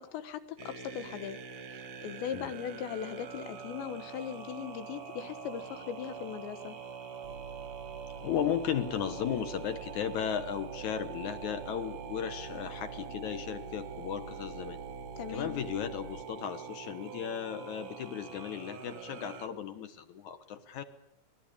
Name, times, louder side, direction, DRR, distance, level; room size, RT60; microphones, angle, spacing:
voice 1, 0.0-1.4 2.0-6.8 15.2-15.6, left 8 dB, 90° left, 12 dB, 3.6 m, -39 dB
sound 1, 0.6-19.5, right 6 dB, 60° right, 1.6 m, -45 dB
sound 2, 7.2-16.2, right 6 dB, 75° right, 1.6 m, -48 dB
voice 2, 8.2-14.8 15.3-20.8, left 9 dB, 65° left, 10 dB, 2.0 m, -35 dB
25.5 x 20.5 x 8.8 m, 0.79 s
omnidirectional pair, 4.9 m